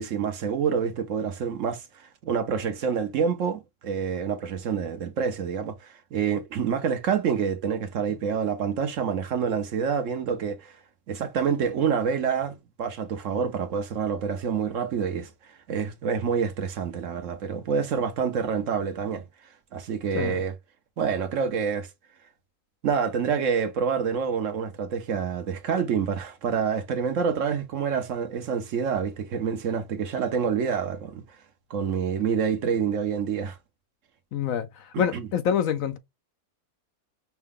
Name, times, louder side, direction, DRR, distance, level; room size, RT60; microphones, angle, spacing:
voice 1, 0.0-10.8 11.1-15.3 15.7-19.2 19.7-20.5 21.0-21.9 22.8-31.2 31.7-33.6 35.1-35.3, right 6 dB, 65° right, 1.0 m, -27 dB
voice 2, 34.3-36.0, left 8 dB, 70° left, 1.0 m, -26 dB
5.6 x 2.2 x 3.5 m
omnidirectional pair, 1.6 m